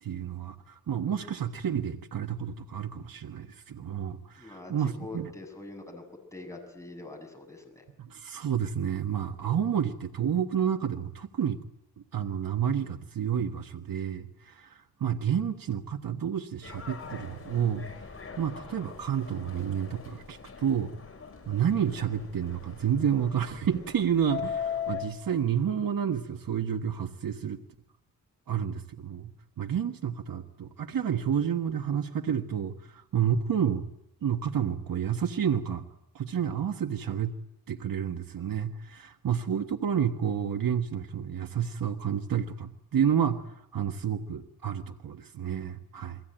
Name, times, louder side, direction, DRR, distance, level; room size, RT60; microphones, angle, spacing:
voice 1, 0.0-5.3 8.0-11.6 12.1-17.9 18.4-20.9 21.5-27.6 28.5-29.3 29.6-33.9 34.2-35.8 36.1-37.3 37.7-46.2, right 8 dB, 65° right, 5 dB, 1.5 m, -30 dB
voice 2, 4.4-4.7 5.0-6.0 6.3-7.8, left 2 dB, 10° left, 3 dB, 6.8 m, -43 dB
Subway metro underground, 16.6-25.0, left 7 dB, 35° left, 6.3 m, -40 dB
30.0 x 22.0 x 9.0 m, 0.80 s
wide cardioid pair, 130°, 37 cm